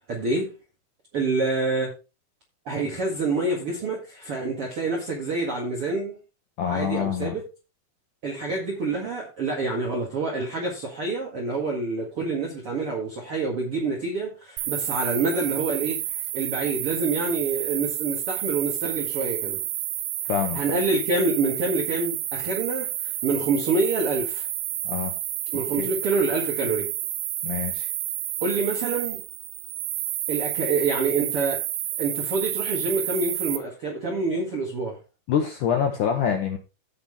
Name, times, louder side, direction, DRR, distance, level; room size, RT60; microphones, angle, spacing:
voice 1, 0.1-0.5 1.1-1.9 2.7-6.2 6.6-7.4 8.2-19.6 20.5-24.5 25.5-26.9 28.4-29.2 30.3-31.6 32.0-35.0, right 3 dB, 45° right, 2.2 m, -27 dB
voice 2, 6.6-7.4 20.3-20.8 24.8-25.1 25.8-25.9 27.4-27.9 35.3-36.6, left 8 dB, 70° left, 2.2 m, -26 dB
sound 1, 14.6-33.6, right 14 dB, 75° right, 2.4 m, -30 dB
15.5 x 5.9 x 3.5 m
omnidirectional pair, 4.7 m